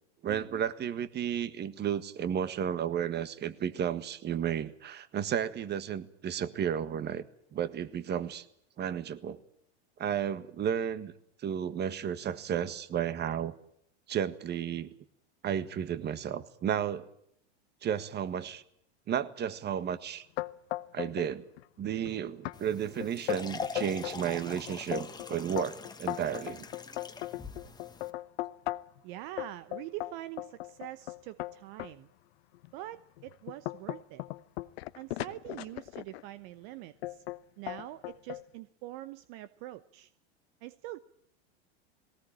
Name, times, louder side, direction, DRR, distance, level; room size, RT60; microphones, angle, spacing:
voice 1, 0.2-7.2 7.5-8.4 8.8-9.4 10.0-11.1 11.4-13.5 14.1-14.9 15.4-17.1 17.8-18.6 19.1-20.2 20.9-21.4 21.8-26.7, right 9 dB, 30° right, 14 dB, 1.7 m, -33 dB
sound 1, 20.4-21.3 21.6-22.1 22.5-22.6 23.0-24.2 24.7-29.0 29.4-31.9 32.5-32.7 33.2-36.2 37.0-37.4 37.7-38.4, left 17 dB, 65° left, 1.0 m, -37 dB
sound 2, 22.5-28.1, left 4 dB, 10° left, 1.6 m, -44 dB
voice 2, 29.0-32.1 32.7-34.2 34.9-37.2 37.6-40.1 40.6-41.0, right 15 dB, 55° right, 15 dB, 1.0 m, -44 dB
19.5 x 18.5 x 8.9 m, 0.71 s
hypercardioid pair, 105°, 34 cm